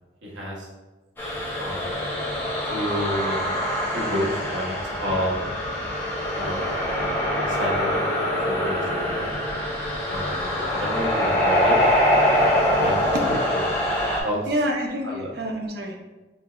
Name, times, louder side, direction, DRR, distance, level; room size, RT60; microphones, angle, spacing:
voice 1, 0.2-0.7 1.6-1.9 2.7-3.5 3.9-5.4 6.3-6.6 7.3-8.0 8.5-9.3 10.0-11.8 12.8-13.0 13.2-13.6 14.2-14.4 15.0-15.3, equal, 85° right, -2 dB, 1.1 m, -30 dB
sound 1, 1.2-14.2, equal, 10° left, 0.9 m, -24 dB
voice 2, 10.5-10.9 11.2-11.3 13.1-13.2 14.5-16.0, equal, 55° right, 2 dB, 0.7 m, -28 dB
5.5 x 3.2 x 2.4 m, 1.2 s
head